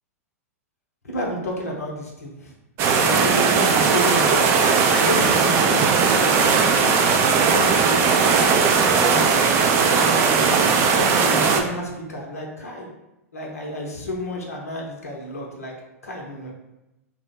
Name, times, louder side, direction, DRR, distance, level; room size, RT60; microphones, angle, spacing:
voice 1, 1.0-2.5 3.1-4.5 4.9-8.4 9.8-12.9 13.3-15.7 16.0-16.5, equal, 75° left, -1 dB, 0.7 m, -31 dB
sound 1, 2.8-11.6, right 5 dB, 35° right, 0.4 m, -18 dB
2.8 x 2.1 x 3.8 m, 0.94 s
figure-of-eight pair, 100°, 8 cm